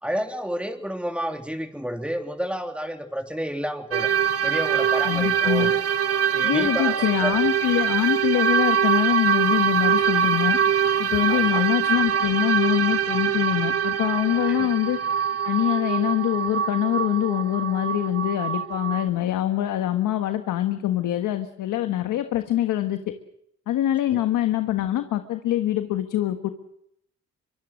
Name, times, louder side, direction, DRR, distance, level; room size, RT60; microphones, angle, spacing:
voice 1, 0.0-4.1 4.4-5.7 6.3-7.4 11.3-11.7 14.5-14.7 24.1-24.2, equal, 5° right, 4 dB, 3.3 m, -30 dB
sound 1, 3.9-19.1, right 8 dB, 50° right, 1.5 m, -24 dB
voice 2, 5.0-5.7 6.4-10.6 11.0-15.0 15.4-23.0 23.7-26.5, left 13 dB, 85° left, 8 dB, 1.5 m, -24 dB
24.5 x 24.0 x 6.5 m, 0.77 s
cardioid pair, 90°, 30 cm